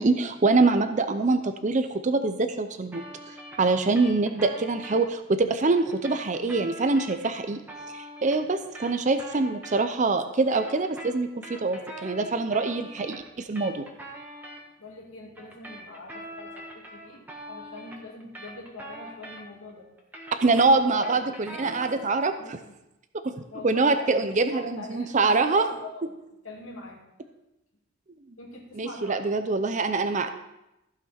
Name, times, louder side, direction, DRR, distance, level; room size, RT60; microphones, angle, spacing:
voice 1, 0.0-3.0 3.6-7.6 7.9-13.9 20.4-22.6 23.2-23.4 23.6-25.6 28.7-30.3, right 3 dB, 35° right, 8 dB, 0.5 m, -24 dB
sound 1, 2.9-5.0 5.8-10.1 10.4-14.6 15.4-19.7 20.0-22.1, right 1 dB, 10° right, 1.4 m, -43 dB
voice 2, 9.4-9.8 14.8-19.9 20.5-21.2 22.4-22.7 23.5-27.0 28.4-29.3, left 2 dB, 90° left, -2 dB, 2.5 m, -43 dB
14.5 x 5.9 x 4.3 m, 0.90 s
head